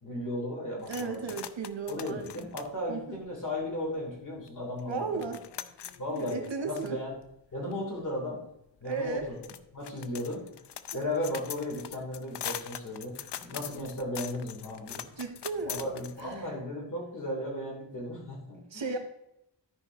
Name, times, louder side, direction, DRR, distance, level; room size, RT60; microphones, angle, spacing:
voice 1, 0.0-1.3 1.9-5.1 6.0-6.4 6.6-7.1 7.5-8.4 8.8-10.5 10.9-15.1 15.6-19.0, left 1 dB, 45° left, -2 dB, 3.2 m, -35 dB
sound 1, 0.8-4.0 4.5-4.6 4.8-16.5, left 10 dB, 70° left, 0.6 m, -43 dB
voice 2, 0.9-2.4 2.9-3.2 4.9-5.4 6.1-7.0 8.8-9.3 10.9-11.0 15.2-15.8 16.2-16.5 18.7-19.0, right 4 dB, 90° right, 4 dB, 1.5 m, -35 dB
13.0 x 5.1 x 3.9 m, 0.83 s
wide cardioid pair, 130°, 43 cm